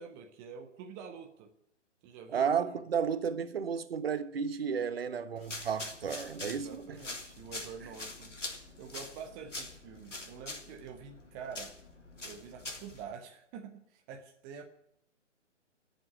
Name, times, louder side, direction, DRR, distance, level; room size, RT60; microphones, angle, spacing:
voice 1, 0.0-1.5 2.0-2.5 6.4-11.7 12.2-14.6, right 6 dB, 10° right, 0.5 m, -47 dB
voice 2, 2.3-7.0, right 7 dB, 50° right, 1.4 m, -33 dB
sound 1, 5.4-13.0, left 2 dB, 75° left, 3.3 m, -44 dB
18.0 x 7.9 x 9.6 m
figure-of-eight pair, 130°, 37 cm